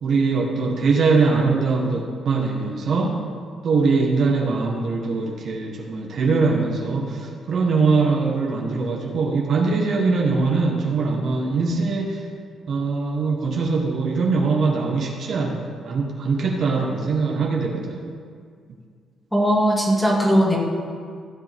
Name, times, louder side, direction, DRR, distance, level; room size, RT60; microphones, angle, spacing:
voice 1, 0.0-3.2 3.6-12.2 12.7-18.1, right 4 dB, 60° right, 0 dB, 1.4 m, -22 dB
voice 2, 19.3-20.6, equal, ahead, -3 dB, 2.4 m, -18 dB
15.5 x 8.0 x 3.6 m, 2.1 s
cardioid pair, 90°, 0 cm